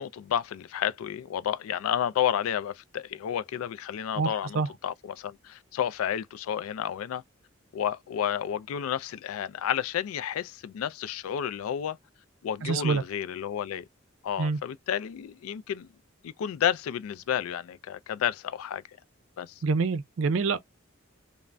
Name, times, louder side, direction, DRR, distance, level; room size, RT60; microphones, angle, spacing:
voice 1, 0.0-7.2 7.7-12.0 12.4-13.8 14.2-15.9 16.2-18.8 19.4-19.6, left 9 dB, 85° left, 0.3 m, -31 dB
voice 2, 4.2-4.7 12.6-13.0 14.4-14.6 19.6-20.6, right 4 dB, 70° right, 0.5 m, -26 dB
2.5 x 2.1 x 3.2 m
head